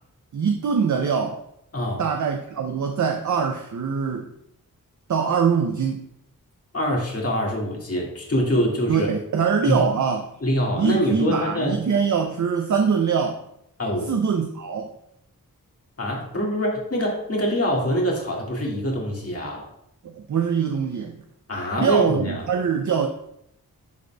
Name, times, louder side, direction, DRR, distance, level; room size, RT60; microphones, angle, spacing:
voice 1, 0.3-1.4 2.0-4.3 5.1-6.1 8.9-10.3 10.8-13.4 14.1-14.9 20.0-21.2 21.8-23.1, right 6 dB, 55° right, 4 dB, 0.6 m, -23 dB
voice 2, 1.7-2.0 6.7-9.1 9.6-9.8 10.4-11.8 13.8-14.1 16.0-19.7 21.5-22.5, equal, 45° left, -2 dB, 1.8 m, -24 dB
11.0 x 3.9 x 2.2 m, 0.77 s
wide cardioid pair, 70°, 35 cm